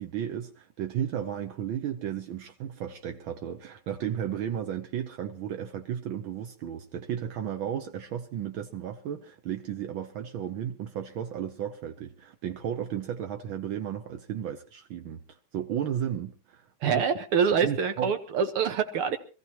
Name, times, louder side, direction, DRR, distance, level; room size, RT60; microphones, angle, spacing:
voice 1, 0.0-17.0 17.6-18.1, right 9 dB, 70° right, 1.7 m, -34 dB
voice 2, 16.8-19.2, right 6 dB, 85° right, 2.3 m, -25 dB
25.0 x 15.0 x 3.0 m
omnidirectional pair, 2.3 m